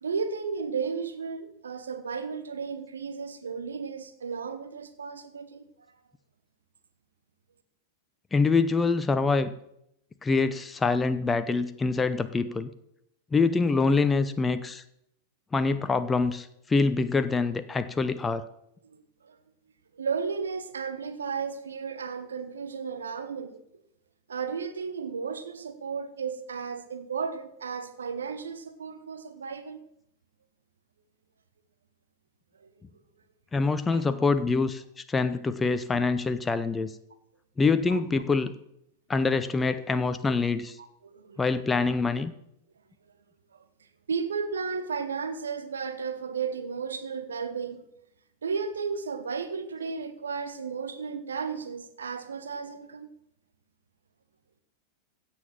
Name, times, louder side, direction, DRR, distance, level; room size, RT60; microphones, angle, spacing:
voice 1, 0.0-5.6 19.2-19.4 20.0-23.6 24.3-29.8 32.6-32.7 33.9-34.0 37.9-38.0 40.8-41.4 43.5-43.6 44.1-47.8 48.4-53.1, right 5 dB, 70° right, 1.1 m, -34 dB
voice 2, 8.3-9.5 10.2-12.7 13.3-14.8 15.5-18.4 33.5-34.8 35.1-36.9 37.6-38.5 39.1-40.8 41.4-42.3, left 4 dB, 15° left, 0.7 m, -25 dB
16.0 x 7.3 x 5.9 m
figure-of-eight pair, 90°, 0 cm